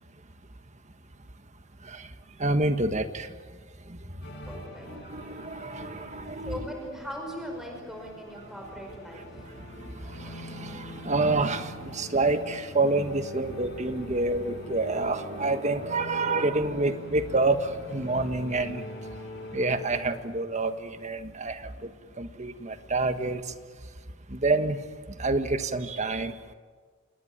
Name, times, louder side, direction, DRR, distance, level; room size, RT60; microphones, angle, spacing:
voice 1, 2.4-3.3 3.9-4.0 4.4-4.5 4.9-6.7 9.6-18.8 19.5-21.9 22.2-23.5 24.3-24.8 25.2-26.4, right 2 dB, 35° right, 9 dB, 1.5 m, -28 dB
sound 1, 4.2-20.1, equal, 60° left, 5.5 m, -43 dB
voice 2, 4.4-4.9 6.4-9.5, equal, ahead, 1 dB, 5.2 m, -39 dB
28.0 x 20.0 x 9.2 m, 1.5 s
head